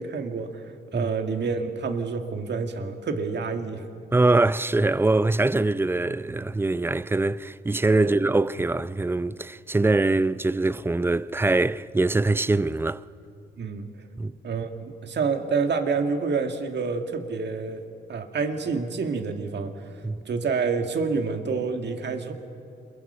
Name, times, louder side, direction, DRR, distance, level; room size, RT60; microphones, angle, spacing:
voice 1, 0.0-3.8 8.0-8.2 13.6-13.9 14.4-20.0 20.3-22.3, right 5 dB, 60° right, 1.9 m, -28 dB
voice 2, 4.1-13.0 14.2-14.3 20.0-20.2, right 2 dB, 10° right, 0.5 m, -23 dB
27.5 x 22.5 x 5.6 m
cardioid pair, 75°, 20 cm